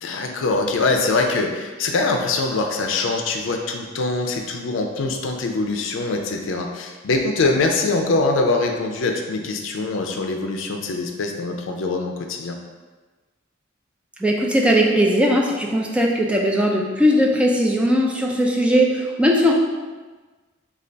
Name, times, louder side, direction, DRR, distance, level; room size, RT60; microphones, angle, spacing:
voice 1, 0.0-12.6, left 3 dB, 75° left, 3 dB, 0.4 m, -23 dB
voice 2, 14.2-19.5, equal, 5° right, -2 dB, 0.3 m, -19 dB
3.8 x 2.3 x 3.3 m, 1.3 s
head